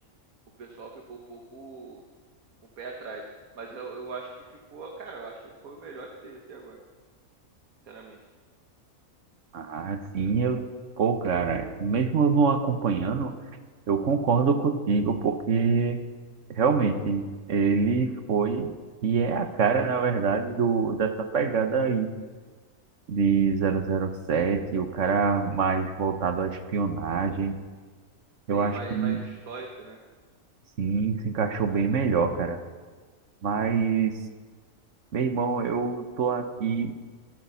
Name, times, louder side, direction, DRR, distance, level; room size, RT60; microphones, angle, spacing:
voice 1, 0.6-2.0 2.8-3.3 3.5-6.8 7.9-8.2 28.5-30.0, right 4 dB, 85° right, 1 dB, 1.9 m, -41 dB
voice 2, 9.5-10.6 11.0-13.3 13.9-16.0 16.5-18.7 19.0-22.1 23.1-27.6 28.5-29.2 30.8-32.6 33.4-34.2 35.1-36.9, right 5 dB, 60° right, 8 dB, 1.4 m, -25 dB
26.0 x 9.4 x 5.7 m, 1.5 s
omnidirectional pair, 1.5 m